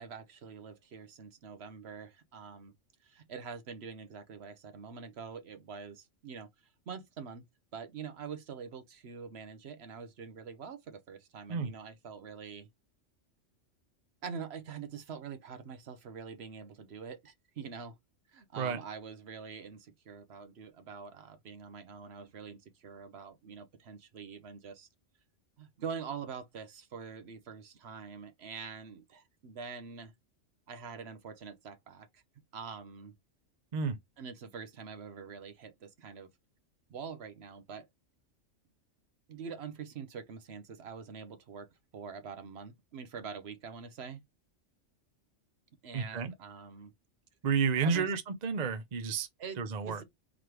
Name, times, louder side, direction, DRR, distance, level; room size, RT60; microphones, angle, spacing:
voice 1, 0.0-2.7 3.0-6.5 6.9-7.4 7.7-12.7 14.2-18.0 18.3-24.9 25.6-30.1 30.7-32.2 32.5-33.1 34.2-36.3 36.9-37.9 39.3-41.7 41.9-44.2 45.8-46.9 47.8-48.1 49.4-50.0, right 6 dB, 60° right, 1.0 m, -45 dB
voice 2, 45.9-46.3 47.4-49.3 49.6-50.0, right 5 dB, 45° right, 0.6 m, -31 dB
4.0 x 3.2 x 2.9 m
omnidirectional pair, 1.3 m